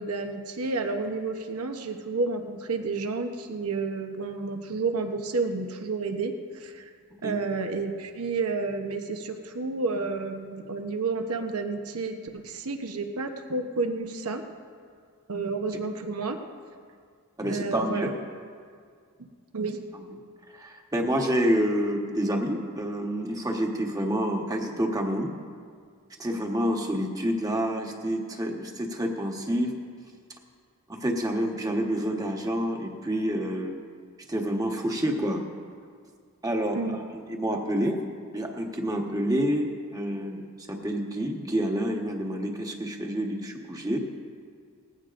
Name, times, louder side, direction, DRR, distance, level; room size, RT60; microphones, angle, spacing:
voice 1, 0.0-6.9 7.2-14.4 15.3-16.4 17.4-18.1 19.5-19.8 36.7-37.0, right 3 dB, 75° right, 5 dB, 1.0 m, -30 dB
voice 2, 17.4-18.1 19.9-20.0 20.5-25.3 26.2-29.7 30.9-33.8 34.3-35.4 36.4-38.0 38.3-40.4 40.7-44.0, equal, 15° right, 1 dB, 1.2 m, -28 dB
19.5 x 15.5 x 2.6 m, 2.1 s
head